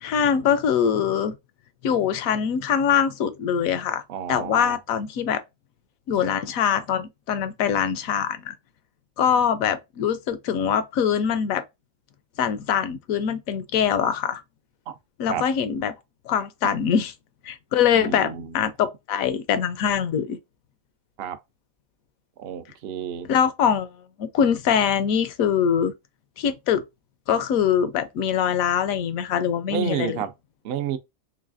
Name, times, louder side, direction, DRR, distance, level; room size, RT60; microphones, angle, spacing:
voice 1, 0.0-1.4 1.8-4.0 4.3-5.4 6.1-8.5 9.2-11.6 12.4-14.4 15.2-15.9 16.3-17.1 17.4-20.4 23.2-23.9 24.2-25.9 26.4-26.8 27.3-30.2, left 8 dB, 80° left, 1.0 m, -23 dB
voice 2, 4.1-4.8 14.9-15.0 15.3-15.5 16.6-16.7 17.9-18.5 21.2-21.4 22.4-23.3 29.7-30.3 30.6-31.0, right 8 dB, 65° right, 0.6 m, -30 dB
4.0 x 3.1 x 2.5 m
omnidirectional pair, 1.5 m